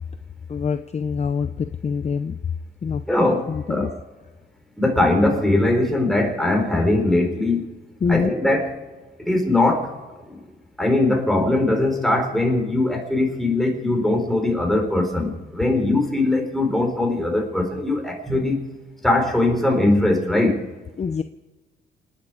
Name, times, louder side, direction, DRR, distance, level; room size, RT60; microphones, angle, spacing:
voice 1, 0.5-2.5 2.8-3.0 3.5-3.9 8.0-8.3 21.0-21.2, left 5 dB, 35° left, 10 dB, 0.7 m, -25 dB
voice 2, 3.1-3.9 4.8-7.7 8.1-8.7 9.2-9.9 10.3-10.4 10.8-18.6 19.0-20.6, left 2 dB, ahead, 2 dB, 4.4 m, -20 dB
28.5 x 9.9 x 4.9 m, 1.2 s
cardioid pair, 90°, 20 cm